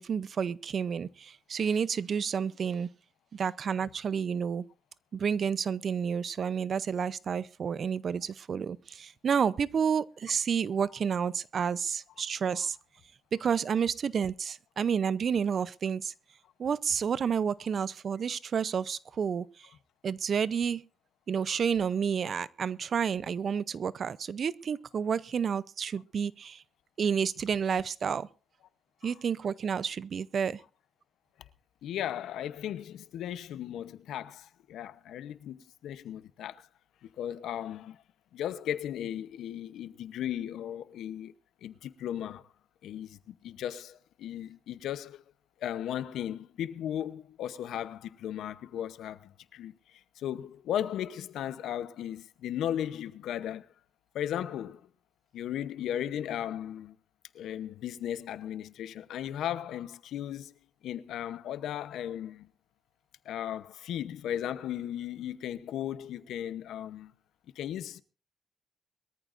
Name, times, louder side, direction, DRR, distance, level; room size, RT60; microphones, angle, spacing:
voice 1, 0.0-2.9 3.3-4.6 5.1-12.8 13.3-16.1 16.6-19.7 20.0-20.8 21.3-26.6 27.0-28.3 29.0-30.6, right 7 dB, 50° right, 0.6 m, -30 dB
voice 2, 31.8-36.7 37.0-38.0 38.3-41.3 41.6-42.4 42.8-45.2 45.6-49.7 50.2-53.7 54.1-54.8 55.3-57.0 57.3-60.6 60.8-62.5 63.2-67.1 67.6-68.0, left 10 dB, 85° left, 0.8 m, -36 dB
22.5 x 14.0 x 2.6 m
cardioid pair, 95°, 0 cm